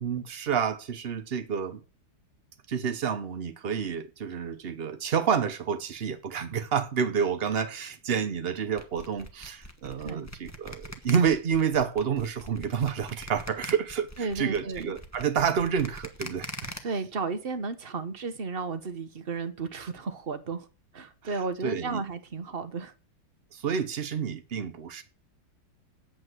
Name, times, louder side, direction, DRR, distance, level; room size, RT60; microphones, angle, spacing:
voice 1, 0.0-1.8 2.7-16.7 21.2-22.0 23.5-25.0, right 7 dB, 65° right, 0.6 m, -29 dB
sound 1, 8.8-16.8, left 1 dB, 10° left, 1.0 m, -42 dB
voice 2, 14.2-14.9 16.8-20.7 20.9-22.9, right 4 dB, 35° right, 1.0 m, -33 dB
8.6 x 7.9 x 7.7 m
omnidirectional pair, 2.2 m